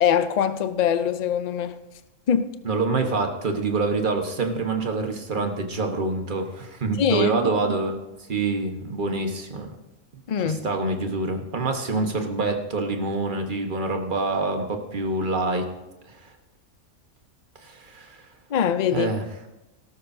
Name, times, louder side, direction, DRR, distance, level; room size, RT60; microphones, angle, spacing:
voice 1, 0.0-1.8 2.3-2.5 7.0-7.3 10.3-10.6 18.5-19.1, left 8 dB, 60° left, 0.4 m, -22 dB
voice 2, 2.6-7.9 8.3-9.7 10.4-15.7 16.1-16.3 17.6-18.2 18.9-19.2, right 3 dB, 35° right, 1.3 m, -26 dB
18.0 x 12.5 x 2.7 m
omnidirectional pair, 1.5 m